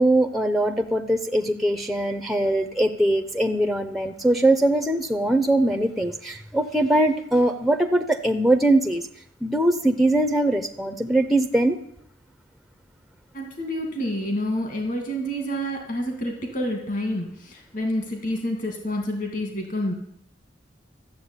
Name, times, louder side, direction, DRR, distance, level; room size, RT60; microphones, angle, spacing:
voice 1, 0.0-9.1 9.4-11.8, right 1 dB, ahead, 6 dB, 0.6 m, -21 dB
voice 2, 13.3-19.9, equal, 45° left, 3 dB, 2.4 m, -28 dB
13.0 x 7.5 x 9.7 m, 0.73 s
head